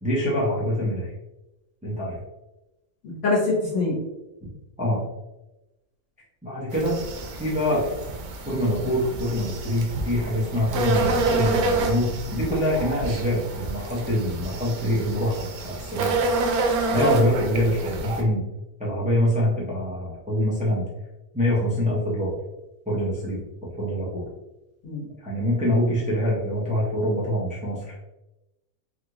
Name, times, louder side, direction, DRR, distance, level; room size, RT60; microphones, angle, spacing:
voice 1, 0.0-1.1 1.8-2.2 4.8-5.0 6.4-7.0 7.4-7.8 8.5-16.2 16.9-18.4 18.8-20.9 21.3-22.3 22.9-23.4 23.8-24.3 25.2-28.0, equal, 10° right, -7 dB, 0.4 m, -25 dB
voice 2, 3.0-4.0 16.9-17.3 24.8-25.0, left 2 dB, 55° left, -7 dB, 1.7 m, -24 dB
sound 1, 6.7-18.2, right 3 dB, 90° right, 1.1 m, -28 dB
3.4 x 2.4 x 2.9 m, 0.98 s
omnidirectional pair, 1.5 m